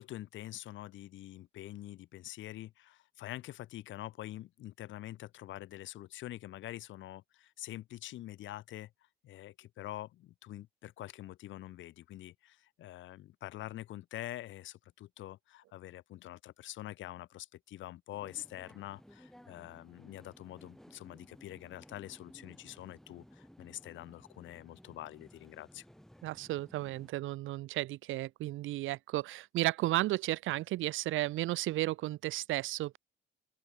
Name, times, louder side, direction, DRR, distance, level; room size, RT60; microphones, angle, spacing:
voice 1, 0.0-8.9 9.2-25.8, left 14 dB, 70° left, 0.6 m, -46 dB
sound 1, 18.1-27.1, equal, ahead, 2.4 m, -58 dB
voice 2, 26.2-33.0, right 16 dB, 80° right, 0.6 m, -33 dB
open air
cardioid pair, 90°, 20 cm